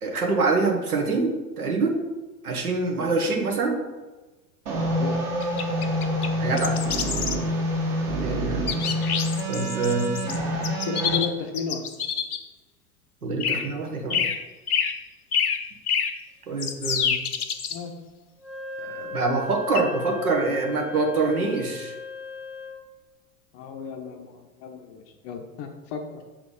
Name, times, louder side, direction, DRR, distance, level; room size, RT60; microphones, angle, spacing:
voice 1, 0.0-2.0 2.4-3.8 6.4-6.8 8.2-8.7 9.5-10.1 13.2-14.3 16.5-17.2 18.8-21.9, right 3 dB, 75° right, 2 dB, 1.3 m, -25 dB
sound 1, 4.7-11.2, equal, 35° right, 1.6 m, -27 dB
sound 2, 5.4-6.3 6.6-7.4 8.7-10.4 10.6-12.4 13.4-13.7 14.1-14.4 14.7-15.0 15.3-16.2 16.6-17.8 19.7-19.8, left 7 dB, 80° left, 0.7 m, -27 dB
voice 2, 10.9-11.8 17.7-18.0 23.5-26.2, left 5 dB, 35° left, 4 dB, 0.6 m, -33 dB
Wind instrument woodwind instrument, 18.4-22.9, left 4 dB, ahead, 1.4 m, -37 dB
6.8 x 3.7 x 3.7 m, 1.2 s
figure-of-eight pair, 85°, 44 cm